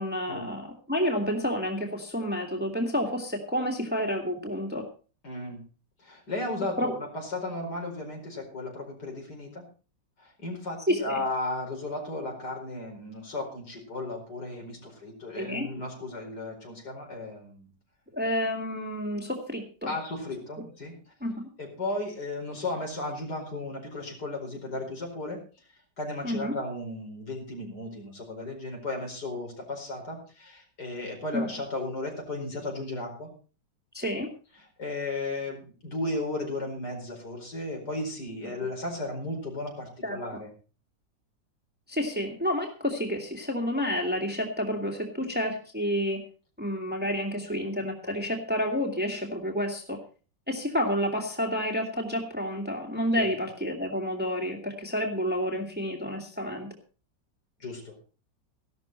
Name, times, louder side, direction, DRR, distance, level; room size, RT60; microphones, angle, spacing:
voice 1, 0.0-4.8 6.8-6.9 10.9-11.2 15.4-15.7 18.1-19.9 21.2-21.5 26.2-26.5 31.3-31.5 33.9-34.3 40.0-40.2 41.9-46.2 46.6-50.0 50.5-56.7, equal, 5° right, 1 dB, 2.3 m, -29 dB
voice 2, 5.2-5.6 6.0-9.7 10.2-17.7 19.9-20.9 21.6-25.4 26.0-33.3 34.6-40.5 53.1-53.3 57.6-58.0, left 2 dB, 60° left, 1 dB, 5.2 m, -35 dB
15.5 x 12.0 x 4.5 m, 0.37 s
omnidirectional pair, 2.0 m